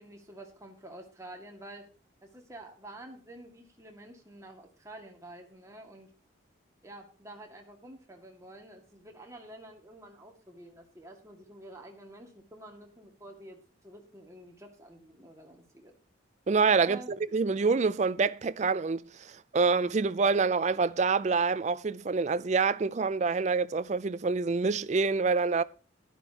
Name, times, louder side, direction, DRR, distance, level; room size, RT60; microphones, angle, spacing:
voice 1, 0.0-1.8 2.2-6.1 6.8-15.9 16.8-17.1, right 1 dB, 15° right, 2.0 m, -49 dB
voice 2, 16.5-17.0 17.3-25.6, right 4 dB, 35° right, 0.4 m, -26 dB
12.0 x 11.5 x 2.9 m
head